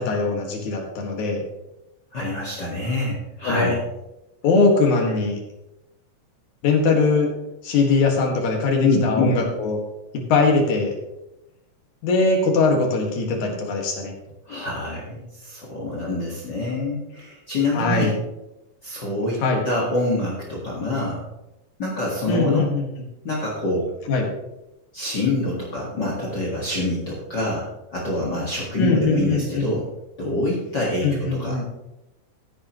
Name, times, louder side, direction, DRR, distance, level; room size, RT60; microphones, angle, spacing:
voice 1, 0.0-1.4 3.4-3.7 4.4-5.4 6.6-7.3 7.6-9.8 10.1-10.9 12.0-14.1 17.7-18.1 19.4-19.6 22.3-22.9 24.1-24.3 28.8-29.7 31.0-31.7, left 3 dB, 65° left, 1 dB, 3.2 m, -21 dB
voice 2, 2.1-3.8 8.8-9.4 14.5-18.1 18.8-21.3 21.8-22.7 23.2-23.9 24.9-27.6 27.9-29.8 30.2-31.6, left 2 dB, 40° left, -4 dB, 2.0 m, -25 dB
15.0 x 9.4 x 3.1 m, 0.92 s
omnidirectional pair, 3.8 m